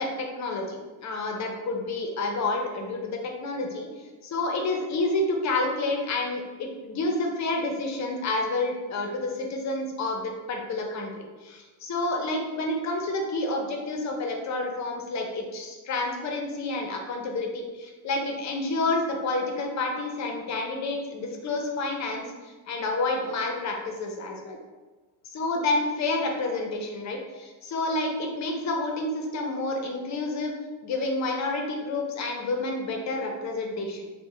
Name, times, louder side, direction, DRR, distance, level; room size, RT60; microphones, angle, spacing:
voice 1, 0.0-3.9 4.2-24.6 25.3-30.5 30.8-34.1, left 2 dB, 40° left, 2 dB, 0.6 m, -29 dB
3.3 x 2.2 x 3.2 m, 1.3 s
cardioid pair, 105°, 46 cm